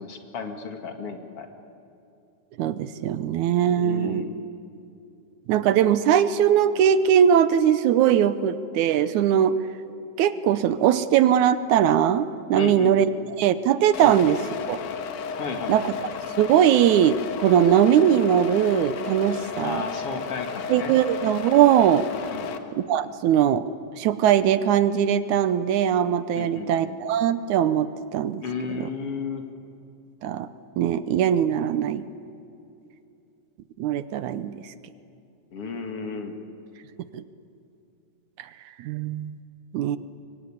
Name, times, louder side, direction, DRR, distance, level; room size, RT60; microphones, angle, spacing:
voice 1, 0.0-1.5 3.7-4.4 12.5-13.0 14.0-14.2 15.3-15.9 19.6-21.0 22.3-22.5 26.3-27.0 28.4-29.4 35.5-36.4, left 4 dB, 50° left, 5 dB, 2.6 m, -33 dB
voice 2, 2.6-4.2 5.5-9.6 10.2-13.1 13.4-14.4 14.7-14.8 15.7-15.8 16.4-19.8 20.7-22.1 22.9-23.7 24.0-28.4 28.7-28.9 30.2-30.5 30.8-32.0 33.8-34.6 37.1-37.2 38.8-39.4 39.7-40.0, right 9 dB, 75° right, 13 dB, 2.2 m, -20 dB
sound 1, 13.9-22.6, left 6 dB, 80° left, 2.8 m, -33 dB
24.5 x 23.5 x 9.8 m, 2.7 s
omnidirectional pair, 3.6 m